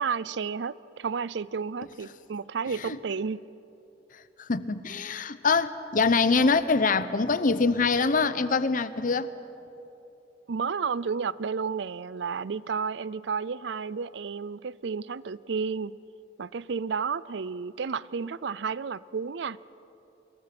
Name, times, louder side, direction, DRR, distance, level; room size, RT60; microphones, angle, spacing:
voice 1, 0.0-3.4 10.5-16.0 16.4-19.6, right 5 dB, 70° right, 20 dB, 0.5 m, -32 dB
voice 2, 4.4-9.3, left 4 dB, 50° left, 14 dB, 0.8 m, -24 dB
26.0 x 22.5 x 6.1 m, 3.0 s
head